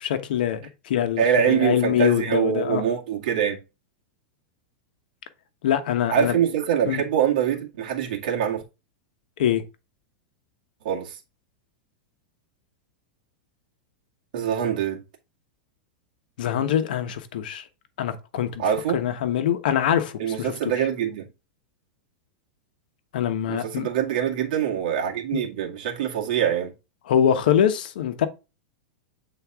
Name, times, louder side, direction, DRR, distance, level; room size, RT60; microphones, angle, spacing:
voice 1, 0.0-2.8 5.6-6.4 6.8-7.0 9.4-9.6 16.4-17.6 18.0-18.6 18.9-20.7 23.1-23.9 25.3-25.5 27.1-28.3, left 10 dB, 75° left, 1.1 m, -24 dB
voice 2, 1.2-3.6 6.1-8.6 10.8-11.2 14.3-15.0 18.6-19.0 20.2-21.3 23.5-26.7, right 8 dB, 60° right, 2.0 m, -24 dB
7.8 x 4.0 x 3.6 m
supercardioid pair, 155°, 5 cm